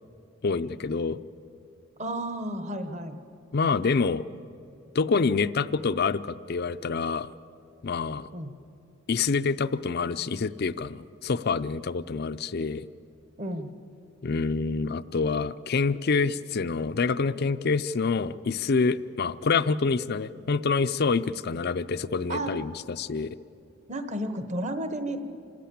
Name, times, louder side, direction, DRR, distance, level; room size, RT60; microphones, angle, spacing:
voice 1, 0.4-1.2 3.5-4.3 4.9-7.3 7.8-8.3 9.1-12.9 14.2-23.3, left 4 dB, 50° left, 15 dB, 0.5 m, -27 dB
voice 2, 2.0-3.2 8.3-8.5 13.4-13.7 22.3-22.5 23.9-25.2, right 1 dB, 35° right, 9 dB, 1.1 m, -32 dB
26.5 x 13.5 x 8.6 m, 2.7 s
head